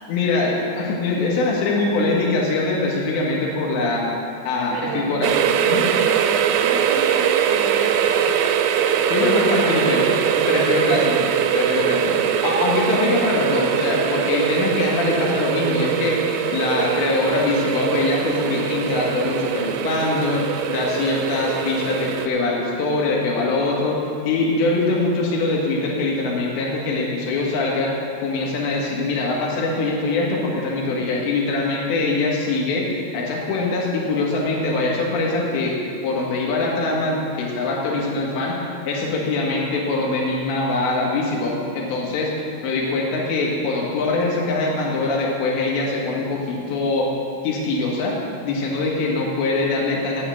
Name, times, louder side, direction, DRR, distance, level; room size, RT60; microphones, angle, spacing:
voice 1, 0.1-4.1 4.5-5.3 5.6-5.9 9.1-10.0 10.5-27.9 28.2-35.8 36.0-47.1 47.4-48.2 48.4-50.3, left 2 dB, 80° left, -2 dB, 3.9 m, -23 dB
voice 2, 4.7-5.3 5.9-8.6 9.2-10.1 10.8-11.1 12.1-12.4, right 3 dB, 75° right, -6 dB, 1.7 m, -32 dB
sound 1, 5.2-22.3, right 8 dB, 90° right, 3.0 m, -22 dB
8.7 x 8.4 x 8.1 m, 2.5 s
omnidirectional pair, 5.1 m